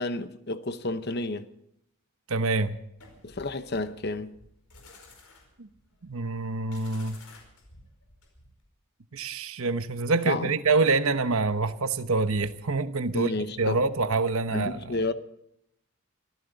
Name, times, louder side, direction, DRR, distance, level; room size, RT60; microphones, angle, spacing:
voice 1, 0.0-1.4 3.2-4.3 10.3-10.5 13.1-13.8 14.5-15.1, left 2 dB, 45° left, 0.9 m, -31 dB
voice 2, 2.3-2.8 5.6-5.7 6.0-7.2 9.1-13.3 13.6-15.0, right 3 dB, 70° right, 1.0 m, -26 dB
sound 1, 3.0-8.7, left 2 dB, 85° left, 4.9 m, -53 dB
24.5 x 14.5 x 4.0 m
head